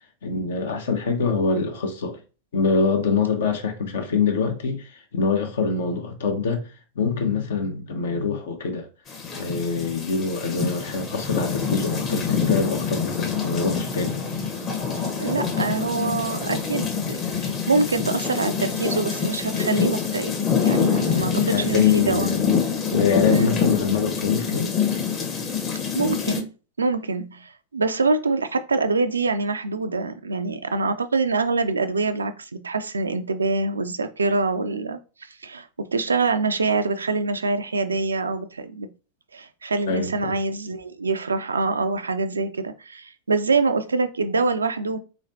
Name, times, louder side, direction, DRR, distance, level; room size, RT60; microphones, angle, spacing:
voice 1, 0.2-2.2 2.5-6.7 7.0-8.9 9.3-14.2 21.1-22.5 22.9-24.7 39.9-40.3, left 5 dB, 60° left, 0.9 m, -24 dB
sound 1, 9.1-26.4, left 6 dB, 30° left, 1.0 m, -26 dB
voice 2, 15.2-20.4 20.6-22.4 23.3-23.5 25.9-38.9 39.3-45.0, right 3 dB, 75° right, 0.4 m, -25 dB
3.8 x 3.1 x 2.7 m
figure-of-eight pair, 90°, 0 cm